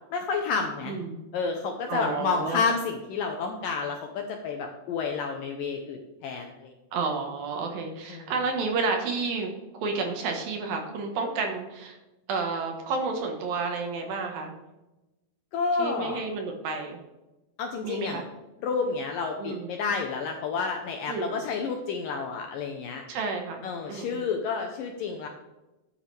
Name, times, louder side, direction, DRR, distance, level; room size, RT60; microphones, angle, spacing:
voice 1, 0.1-1.0 1.3-6.7 8.1-8.3 15.5-16.2 17.6-18.2 18.6-23.1 23.6-25.3, left 5 dB, 75° left, 3 dB, 2.1 m, -30 dB
voice 2, 0.9-1.2 1.9-2.6 6.9-12.0 12.3-14.6 15.8-17.0 17.8-18.2 19.4-19.7 21.1-21.4 23.1-24.3, right 4 dB, 65° right, 3 dB, 2.9 m, -31 dB
13.0 x 10.0 x 3.4 m, 1.0 s
omnidirectional pair, 4.9 m